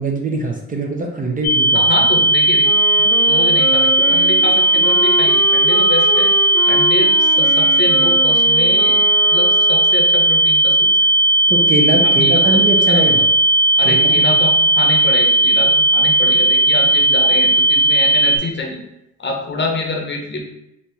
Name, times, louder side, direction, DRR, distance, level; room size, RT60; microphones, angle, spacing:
voice 1, 0.0-1.8 11.5-13.2 13.8-14.4, right 2 dB, 30° right, 1 dB, 0.5 m, -22 dB
sound 1, 1.4-18.4, right 1 dB, 60° left, 0.5 m, -15 dB
voice 2, 1.7-2.7 3.0-6.3 6.7-9.0 9.3-10.9 12.0-13.3 13.8-18.8 19.2-20.5, left 3 dB, 40° left, 1 dB, 0.8 m, -26 dB
Wind instrument woodwind instrument, 2.6-10.4, left 1 dB, 10° left, 1.0 m, -27 dB
3.3 x 2.8 x 2.9 m, 0.86 s
cardioid pair, 90°, 30 cm